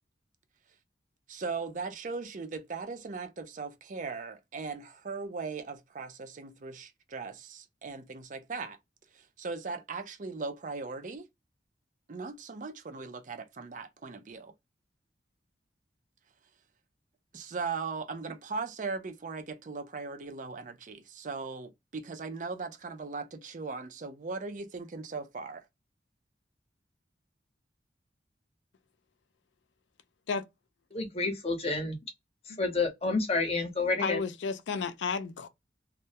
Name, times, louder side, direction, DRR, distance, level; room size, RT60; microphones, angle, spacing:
voice 1, 1.3-8.8 9.1-11.3 12.1-14.5 17.3-25.7, right 4 dB, 45° right, 0.5 m, -38 dB
voice 2, 30.9-32.0 32.4-34.2, left 3 dB, 35° left, 0.7 m, -29 dB
voice 3, 34.0-35.5, left 5 dB, 90° left, 0.4 m, -32 dB
2.2 x 2.1 x 2.7 m
head